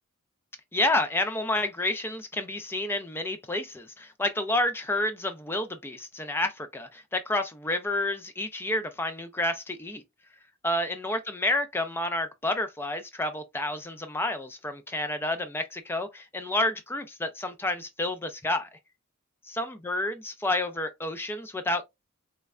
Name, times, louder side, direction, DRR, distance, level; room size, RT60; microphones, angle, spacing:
voice 1, 0.7-10.0 10.6-18.7 19.5-21.8, left 1 dB, 10° left, 0.3 m, -29 dB
3.2 x 3.2 x 2.3 m
head